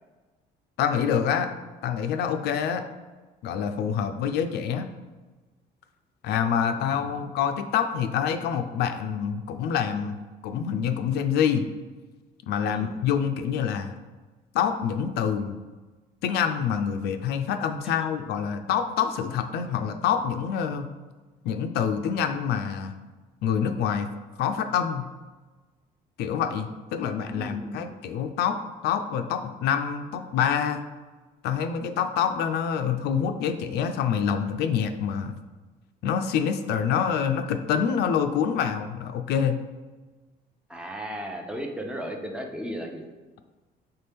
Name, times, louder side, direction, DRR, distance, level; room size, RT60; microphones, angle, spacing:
voice 1, 0.8-1.5 1.8-2.8 3.4-4.8 6.2-10.2 10.4-11.7 12.5-14.0 14.5-15.6 16.2-20.9 21.4-22.9 23.4-24.1 24.4-25.0 26.2-28.6 28.8-30.8 31.4-35.3 36.0-39.6, left 7 dB, 75° left, 7 dB, 0.4 m, -26 dB
voice 2, 6.9-7.2 12.7-12.9 17.8-18.0 27.2-27.9 40.7-43.0, equal, 5° right, 2 dB, 0.5 m, -36 dB
4.2 x 3.6 x 3.4 m, 1.3 s
cardioid pair, 110°, 17 cm